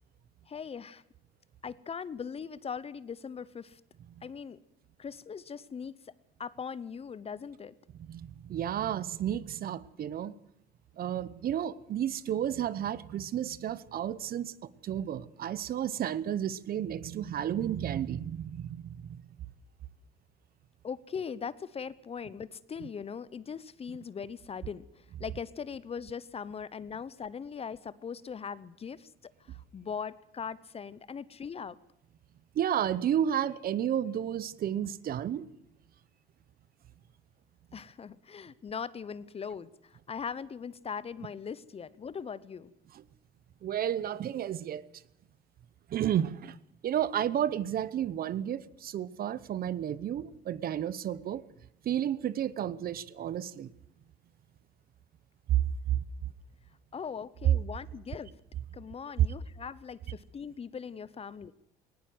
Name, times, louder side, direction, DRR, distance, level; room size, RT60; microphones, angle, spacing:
voice 1, 0.5-1.0 1.6-3.8 4.2-4.6 5.0-6.0 6.4-7.7 20.8-29.1 29.5-31.8 37.7-42.7 56.9-58.3 58.7-61.5, left 6 dB, 30° left, 19 dB, 0.8 m, -40 dB
voice 2, 8.1-10.3 11.0-14.5 14.8-19.2 32.6-35.5 43.6-44.8 45.9-46.5 46.8-51.4 51.8-53.7 55.5-55.6 55.9-56.0, right 10 dB, 55° right, 18 dB, 0.9 m, -32 dB
19.0 x 17.5 x 7.8 m, 0.78 s
cardioid pair, 95°, 19 cm